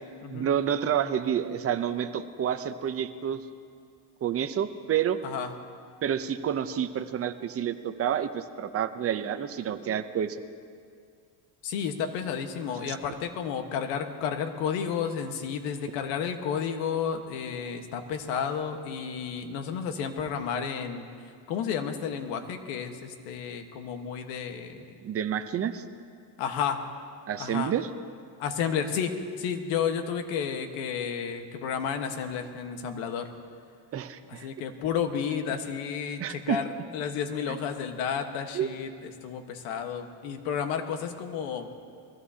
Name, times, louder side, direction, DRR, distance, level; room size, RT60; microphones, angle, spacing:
voice 1, 0.3-3.4 4.2-5.2 6.0-10.4 12.9-13.0 25.0-25.8 27.3-27.9 33.9-34.4 36.2-36.6 37.5-37.6 38.5-38.7, right 9 dB, 30° right, 10 dB, 0.7 m, -29 dB
voice 2, 5.2-5.5 11.6-21.1 21.5-24.8 26.4-26.8 27.4-27.7 28.4-33.3 34.3-36.7 36.9-41.7, left 7 dB, 80° left, 6 dB, 1.5 m, -32 dB
22.0 x 15.5 x 2.8 m, 2.2 s
cardioid pair, 130°, 47 cm